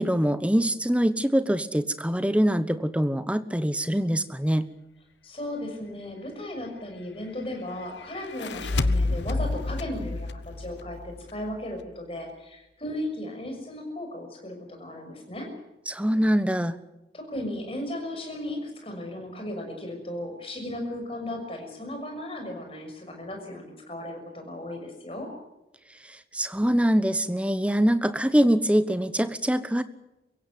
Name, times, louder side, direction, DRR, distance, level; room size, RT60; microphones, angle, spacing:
voice 1, 0.0-4.7 15.9-16.8 26.1-29.8, equal, 5° right, 12 dB, 1.1 m, -24 dB
voice 2, 5.2-15.5 17.1-25.3, left 1 dB, 30° left, 3 dB, 6.3 m, -36 dB
sound 1, 8.2-11.5, left 2 dB, 85° left, 1.1 m, -29 dB
24.0 x 16.0 x 9.6 m, 0.96 s
head